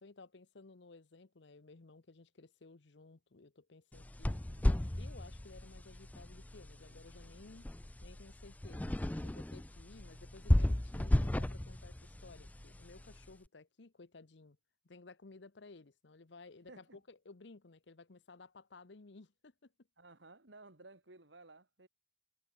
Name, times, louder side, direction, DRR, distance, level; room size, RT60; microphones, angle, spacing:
voice 1, 0.0-7.7 8.0-9.0 9.2-14.6 14.8-19.7, left 3 dB, 75° left, 0.9 m, -57 dB
sound 1, 3.9-13.3, left 1 dB, 10° left, 0.3 m, -35 dB
voice 2, 4.3-4.7 16.7-17.0 20.0-21.9, right 2 dB, 80° right, 3.3 m, -57 dB
head